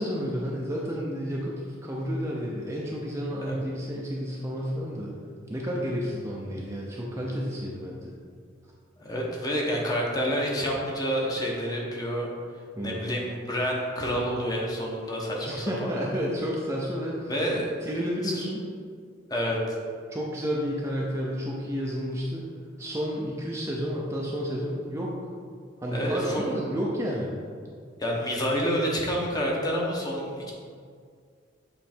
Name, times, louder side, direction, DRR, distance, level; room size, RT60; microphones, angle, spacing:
voice 1, 0.0-5.1 5.5-8.1 12.8-13.1 15.4-17.3 17.8-18.6 20.1-22.4 22.8-25.1 25.8-27.3, equal, 15° right, -4 dB, 0.5 m, -31 dB
voice 2, 9.0-12.3 12.8-15.9 17.3-17.7 18.2-18.3 19.3-19.6 25.9-26.5 28.0-30.5, equal, 20° left, -2 dB, 0.9 m, -28 dB
7.0 x 3.2 x 4.3 m, 2.1 s
head